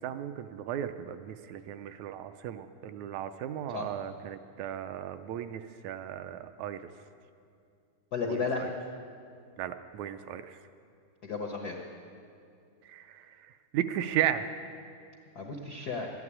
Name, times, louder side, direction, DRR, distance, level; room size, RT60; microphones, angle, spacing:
voice 1, 0.0-6.9 8.3-8.7 9.6-10.6 12.9-13.5 13.7-14.5, right 10 dB, 80° right, 10 dB, 1.7 m, -35 dB
voice 2, 8.1-8.7 11.2-11.8 15.3-16.1, left 4 dB, 80° left, 1 dB, 0.8 m, -33 dB
12.5 x 11.0 x 9.7 m, 2.4 s
omnidirectional pair, 3.6 m